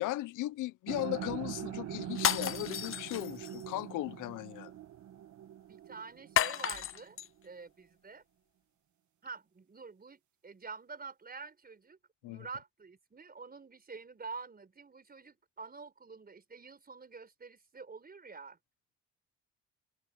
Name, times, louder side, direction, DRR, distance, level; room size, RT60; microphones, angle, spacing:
voice 1, 0.0-4.7 12.2-12.5, left 17 dB, 90° left, 0.8 m, -37 dB
sound 1, 0.9-7.0, right 11 dB, 70° right, 1.5 m, -43 dB
sound 2, 2.1-3.6 6.4-7.3, left 10 dB, 45° left, 0.7 m, -32 dB
voice 2, 5.7-7.2 7.4-8.2 9.2-18.6, right 4 dB, 30° right, 5.5 m, -47 dB
cardioid pair, 90°, 30 cm